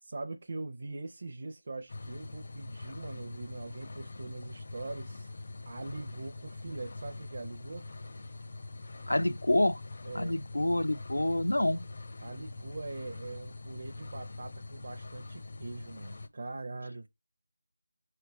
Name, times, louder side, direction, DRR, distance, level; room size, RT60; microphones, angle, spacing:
voice 1, 0.0-5.3 5.7-7.9 10.0-10.4 12.2-17.1, right 3 dB, 40° right, 0.5 m, -42 dB
sound 1, 1.9-16.3, left 2 dB, 45° left, 0.6 m, -44 dB
voice 2, 9.1-9.8 10.1-11.8, left 1 dB, 85° left, 0.5 m, -27 dB
4.7 x 3.3 x 3.0 m
figure-of-eight pair, 170°, 0 cm